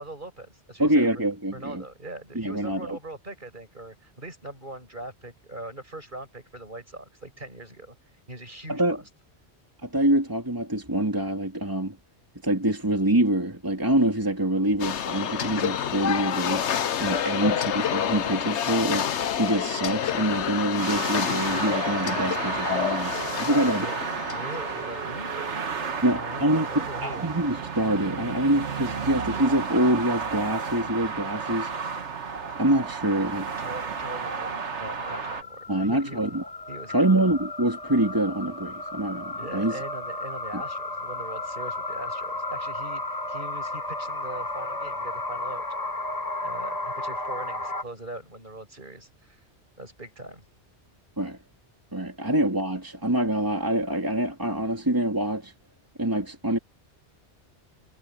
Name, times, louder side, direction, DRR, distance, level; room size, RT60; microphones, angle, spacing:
voice 1, 0.0-8.0 8.3-9.0 17.3-17.5 23.5-24.0 24.3-27.3 33.6-36.4 36.7-37.3 39.4-43.0 43.3-45.6 46.4-49.4 49.8-50.5, right 1 dB, 45° right, 6.9 m, -41 dB
voice 2, 0.8-1.8 2.3-3.0 8.7-9.0 9.8-12.0 12.4-16.7 17.0-19.1 19.3-23.1 23.4-23.9 26.0-26.7 27.0-31.7 32.5-33.5 35.7-36.4 36.9-39.8 40.5-40.6 51.2-51.4 51.9-55.5 56.0-56.6, right 1 dB, 15° right, 2.8 m, -25 dB
sound 1, 14.8-25.2, left 9 dB, 75° left, 1.2 m, -28 dB
sound 2, 20.8-35.4, right 5 dB, 80° right, 1.8 m, -32 dB
sound 3, 35.1-47.8, left 2 dB, 35° left, 2.2 m, -34 dB
omnidirectional pair, 1.2 m